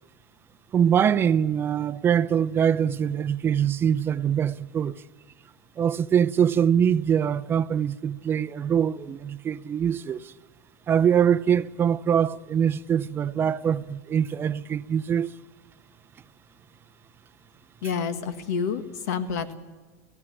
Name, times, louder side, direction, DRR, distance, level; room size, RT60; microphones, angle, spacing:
voice 1, 0.7-4.9 5.8-10.3 10.9-15.3, right 8 dB, 25° right, 0.6 m, -23 dB
voice 2, 17.8-19.5, left 6 dB, 75° left, 1.9 m, -29 dB
17.0 x 16.5 x 9.9 m
supercardioid pair, 130°, 9 cm